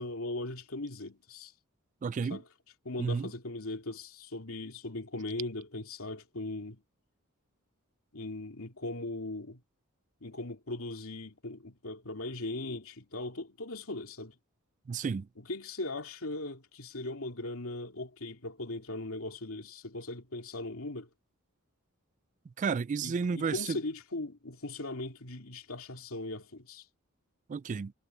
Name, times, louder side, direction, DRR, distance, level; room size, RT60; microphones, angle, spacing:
voice 1, 0.0-1.5 2.3-2.4 2.8-6.8 8.1-9.6 10.2-14.4 15.4-21.1 23.0-26.8, left 2 dB, 75° left, 2.8 m, -39 dB
voice 2, 2.0-2.4 3.0-3.3 14.9-15.3 22.6-23.8 27.5-27.9, right 5 dB, 35° right, 0.3 m, -32 dB
head